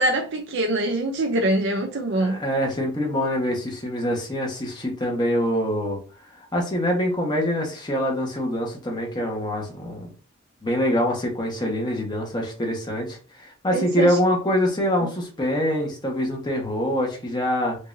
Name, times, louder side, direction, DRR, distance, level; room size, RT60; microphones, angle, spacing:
voice 1, 0.0-2.4 13.7-14.2, right 1 dB, 65° right, 0.6 m, -24 dB
voice 2, 2.1-6.0 6.5-10.1 10.6-17.8, equal, 20° left, 1.3 m, -25 dB
5.3 x 2.7 x 2.7 m
head